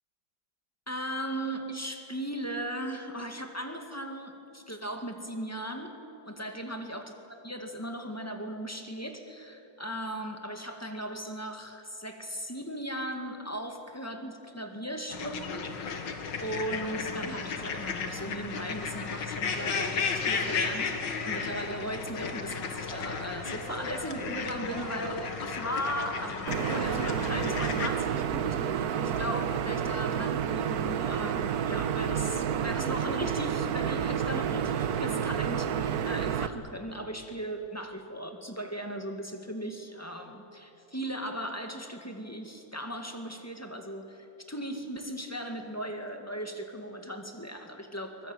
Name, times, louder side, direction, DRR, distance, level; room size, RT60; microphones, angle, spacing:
voice 1, 0.9-5.9 6.3-7.1 7.4-16.2 16.4-21.0 21.2-48.3, equal, 10° left, 4 dB, 1.9 m, -37 dB
sound 1, 15.1-27.9, left 5 dB, 85° left, 2.3 m, -34 dB
sound 2, 22.9-36.5, right 8 dB, 90° right, 1.8 m, -46 dB
sound 3, 26.5-36.5, right 8 dB, 65° right, 1.3 m, -30 dB
23.5 x 21.0 x 9.2 m, 2.9 s
omnidirectional pair, 1.9 m